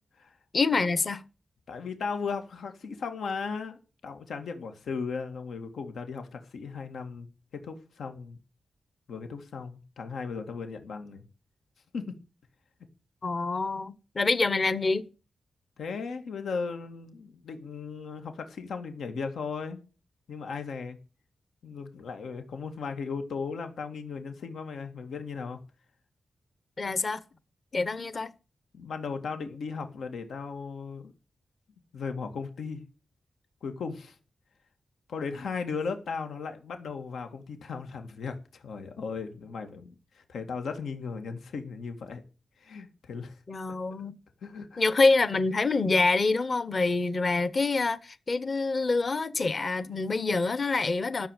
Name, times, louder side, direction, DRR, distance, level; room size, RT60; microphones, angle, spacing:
voice 1, 0.5-1.2 13.2-15.0 26.8-27.2 27.7-28.3 43.5-44.2 44.8-51.3, left 3 dB, 35° left, 0.9 m, -26 dB
voice 2, 1.7-7.3 7.6-8.4 9.1-11.2 11.9-12.2 15.8-19.8 20.3-21.0 21.6-25.6 28.7-31.1 31.9-32.8 33.6-34.2 35.1-42.2 42.6-43.4 44.4-44.8, left 5 dB, 90° left, 2.0 m, -36 dB
14.0 x 7.1 x 9.0 m
wide cardioid pair, 180°, 0 cm